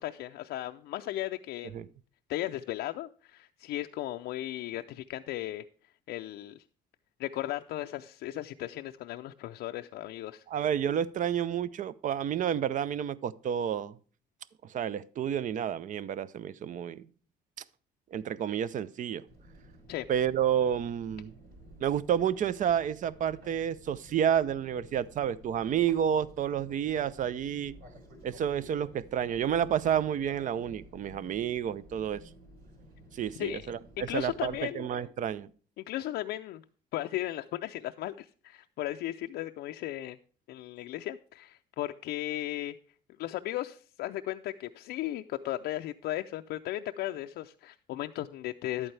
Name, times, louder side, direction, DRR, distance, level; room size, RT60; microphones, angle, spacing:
voice 1, 0.0-1.9 2.3-5.7 6.1-6.6 7.2-10.4 19.9-20.1 33.4-33.6 34.1-34.9 35.8-36.6 36.9-40.2 40.5-42.7 43.2-48.9, left 14 dB, 75° left, 0.5 m, -36 dB
voice 2, 10.5-13.9 14.6-17.0 18.1-19.2 20.1-21.3 21.8-27.7 28.2-32.2 33.1-35.5, right 9 dB, 50° right, 0.6 m, -30 dB
Fixed-wing aircraft airplane, 19.3-34.6, right 1 dB, 70° right, 4.9 m, -53 dB
11.0 x 8.7 x 3.3 m
cardioid pair, 110°, 17 cm